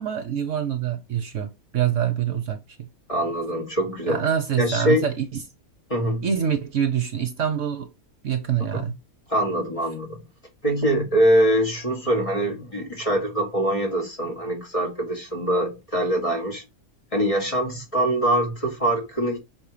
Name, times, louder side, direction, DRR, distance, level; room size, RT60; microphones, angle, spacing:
voice 1, 0.0-2.9 4.1-5.3 6.2-7.9 8.2-9.0, right 9 dB, 60° right, 1.1 m, -25 dB
voice 2, 3.1-4.3 4.6-5.0 5.9-6.2 8.7-8.8 9.3-10.2 10.6-16.6 17.1-19.4, right 1 dB, 20° left, 1.6 m, -23 dB
6.2 x 4.3 x 4.9 m
omnidirectional pair, 1.6 m